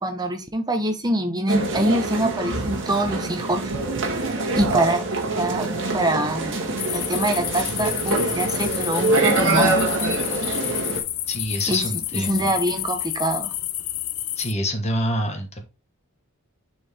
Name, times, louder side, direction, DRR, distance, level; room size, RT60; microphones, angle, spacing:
voice 1, 0.0-3.7 4.2-5.1 5.3-5.7 5.9-9.8 11.7-11.8 12.1-13.5, right 1 dB, 20° right, 5 dB, 1.0 m, -24 dB
sound 1, 1.5-11.0, right 2 dB, 60° right, 1.7 m, -25 dB
sound 2, 6.8-14.5, left 13 dB, 85° left, 0.6 m, -29 dB
voice 2, 11.3-12.5 14.4-15.6, equal, 30° left, 4 dB, 1.3 m, -26 dB
6.9 x 4.6 x 3.5 m, 0.29 s
head